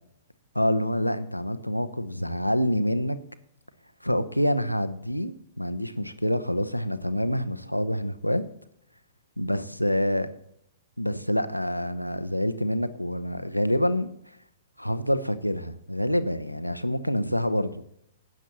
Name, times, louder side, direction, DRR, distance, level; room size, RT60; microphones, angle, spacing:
voice 1, 0.5-3.2 4.0-8.4 9.4-10.3 11.0-14.1 14.8-17.7, equal, 90° left, 11 dB, 0.7 m, -26 dB
18.5 x 9.2 x 3.0 m, 0.73 s
figure-of-eight pair, 110°, 0 cm